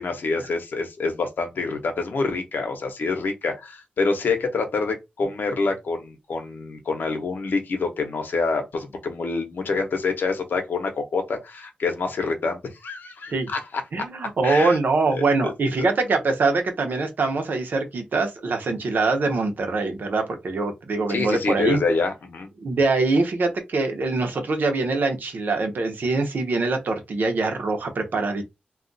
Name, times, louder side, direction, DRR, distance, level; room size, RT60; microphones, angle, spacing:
voice 1, 0.0-14.0 14.4-14.8 15.1-15.5 15.8-15.9 21.1-22.5, left 4 dB, 80° left, 0.9 m, -27 dB
voice 2, 13.9-21.8 22.6-28.4, right 3 dB, 70° right, 0.9 m, -23 dB
2.4 x 2.3 x 3.9 m
wide cardioid pair, 85°, 3 cm